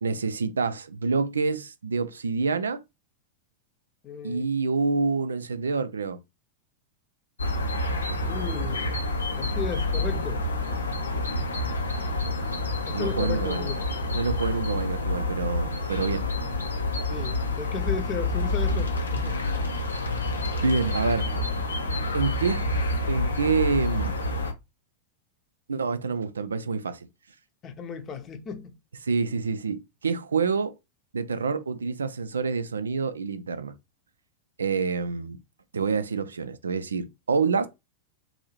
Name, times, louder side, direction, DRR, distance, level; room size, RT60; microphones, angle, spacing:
voice 1, 0.0-2.8 4.2-6.2 12.9-13.7 14.1-16.2 20.6-21.3 22.1-22.7 23.1-24.1 25.7-27.1 29.0-30.8 31.1-33.7 34.6-35.4 35.7-37.7, right 4 dB, 70° right, 0.4 m, -27 dB
voice 2, 4.0-4.5 8.2-8.9 9.4-10.4 12.8-13.9 17.1-19.4 20.5-20.6 27.6-28.7, left 5 dB, 30° left, 0.8 m, -35 dB
sound 1, 7.4-24.5, left 2 dB, 75° left, 0.7 m, -28 dB
3.9 x 2.6 x 3.0 m
figure-of-eight pair, 90°, 0 cm